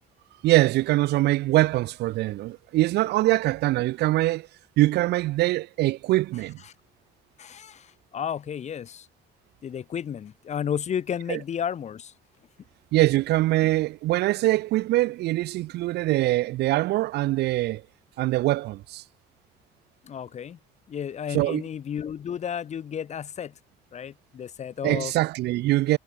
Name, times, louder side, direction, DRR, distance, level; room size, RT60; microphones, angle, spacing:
voice 1, 0.4-4.5 4.8-6.6 11.3-11.4 12.9-17.8 18.2-19.0 21.3-21.6 24.8-26.0, right 17 dB, 80° right, 1.6 m, -23 dB
voice 2, 7.4-9.1 9.6-12.1 20.0-20.6 20.9-23.5 23.9-25.1, left 8 dB, 40° left, 1.3 m, -32 dB
cardioid pair, 110°, 17 cm